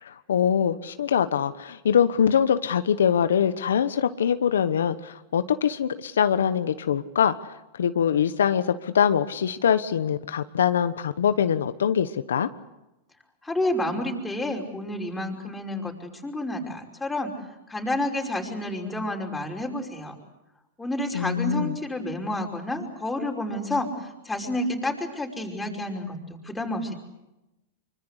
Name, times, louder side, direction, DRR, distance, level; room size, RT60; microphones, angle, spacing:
voice 1, 0.0-7.4 7.7-12.5 21.1-21.8, left 8 dB, 90° left, 11 dB, 1.1 m, -23 dB
voice 2, 13.4-17.3 17.7-20.2 20.8-26.9, left 1 dB, 10° left, 1 dB, 5.4 m, -30 dB
25.0 x 24.5 x 8.2 m, 0.96 s
hypercardioid pair, 125°, 0 cm